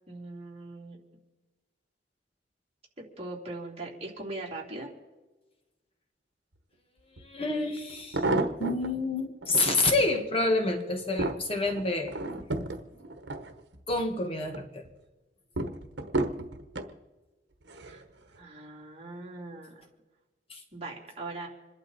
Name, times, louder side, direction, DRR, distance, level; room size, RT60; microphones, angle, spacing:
voice 1, 0.1-1.0 3.2-4.9 17.8-18.0 18.4-19.7 20.7-21.5, right 2 dB, 35° right, -2 dB, 3.4 m, -40 dB
voice 2, 7.2-8.2 8.6-12.1 13.9-14.8 20.5-20.6, left 2 dB, 35° left, 4 dB, 1.7 m, -28 dB
sound 1, 7.2-7.3 7.9-8.9 9.4-10.1 10.6-14.0 14.4-14.9 15.6-16.9 17.7-18.0 18.3-18.4, right 2 dB, 80° right, 1.2 m, -32 dB
27.0 x 11.5 x 4.2 m, 1.2 s
head